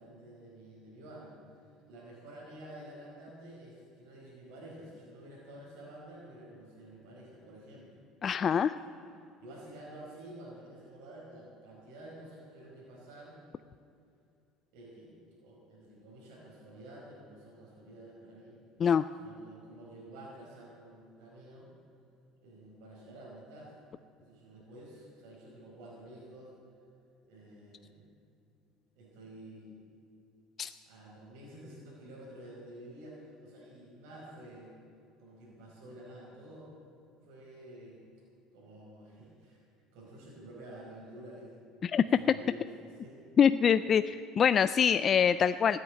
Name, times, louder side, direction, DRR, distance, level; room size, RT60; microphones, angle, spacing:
voice 1, 0.0-8.0 9.4-13.4 14.7-18.6 19.2-21.7 22.4-23.7 24.2-26.5 27.3-28.1 28.9-29.8 30.8-34.7 35.2-36.7 37.2-38.0 38.5-39.6 39.9-41.6 42.1-43.4, right 1 dB, 80° right, -5 dB, 4.8 m, -50 dB
voice 2, 8.2-8.8 18.8-19.0 30.6-30.7 41.8-42.1 43.4-45.8, left 7 dB, 30° left, 12 dB, 0.3 m, -25 dB
15.0 x 9.6 x 9.3 m, 2.6 s
cardioid pair, 140°, 0 cm